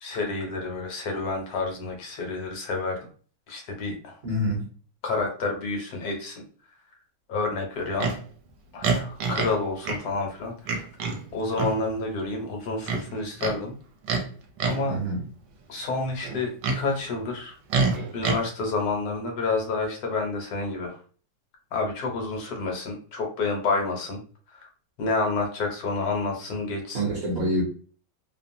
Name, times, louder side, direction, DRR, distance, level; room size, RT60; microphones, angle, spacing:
voice 1, 0.0-3.0 3.5-4.2 5.0-6.4 7.3-8.1 8.7-10.8 11.3-13.7 14.6-15.0 15.7-17.6 18.1-21.0 21.7-24.2 24.5-24.7 25.0-27.1, left 3 dB, 65° left, 1.2 m, -29 dB
voice 2, 4.2-4.7 14.9-15.2 26.9-27.6, equal, 45° right, 0.9 m, -26 dB
Livestock farm animals working animals, 8.0-8.2 8.8-9.6 9.8-10.0 10.7-11.2 11.5-11.8 12.8-13.6 14.0-14.3 14.6-14.9 16.2-16.8 17.7-18.4, right 4 dB, 75° right, 1.2 m, -26 dB
3.0 x 2.0 x 2.6 m
omnidirectional pair, 1.9 m